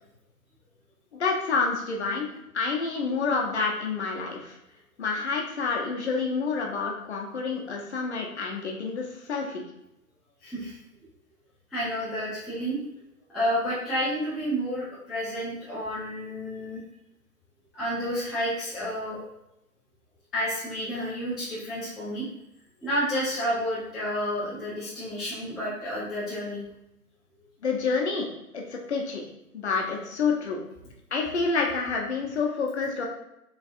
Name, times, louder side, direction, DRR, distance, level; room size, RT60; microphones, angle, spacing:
voice 1, 1.1-2.3 2.5-4.6 5.0-9.6 27.6-28.3 28.5-29.2 29.5-30.6 31.1-33.1, left 4 dB, 45° left, 0 dB, 0.9 m, -28 dB
voice 2, 10.4-10.8 11.7-12.8 13.3-16.8 17.7-19.2 20.3-22.3 22.8-26.6, equal, ahead, -10 dB, 0.3 m, -30 dB
4.9 x 3.3 x 2.5 m, 0.85 s
figure-of-eight pair, 135°, 47 cm